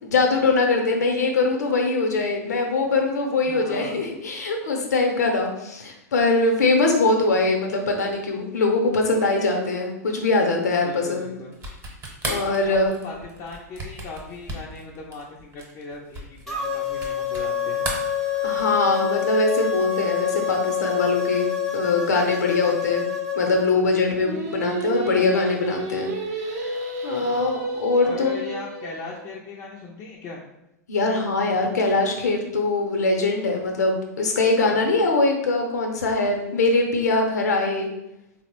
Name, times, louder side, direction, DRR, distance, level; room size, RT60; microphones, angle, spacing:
voice 1, 0.0-11.3 12.2-12.9 18.4-23.0 23.4-26.1 26.4-26.7 27.0-28.4 30.9-37.9, left 3 dB, 85° left, 2 dB, 0.7 m, -22 dB
voice 2, 3.4-4.0 10.8-11.6 12.6-17.9 27.2-27.6 28.0-30.4 34.7-34.9, left 3 dB, 35° left, -2 dB, 0.4 m, -39 dB
sound 1, 11.5-17.5 17.8-18.8, right 2 dB, 20° right, 0.9 m, -35 dB
sound 2, 16.5-23.7, left 8 dB, 5° left, 0.7 m, -27 dB
Singing, 24.1-29.3, right 2 dB, 65° right, 0.6 m, -31 dB
3.7 x 2.0 x 2.9 m, 0.89 s
hypercardioid pair, 110°, 9 cm